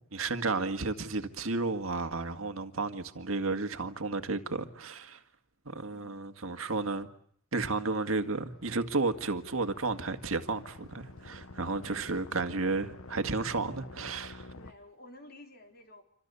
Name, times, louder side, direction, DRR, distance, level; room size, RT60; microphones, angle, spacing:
voice 1, 0.1-5.2 5.7-7.1 7.5-14.5, right 3 dB, 75° right, 1.9 m, -32 dB
voice 2, 5.9-6.4 14.5-16.0, left 1 dB, 50° left, 4.2 m, -52 dB
sound 1, 8.2-14.7, left 2 dB, 85° left, 1.2 m, -49 dB
28.0 x 25.0 x 7.0 m
head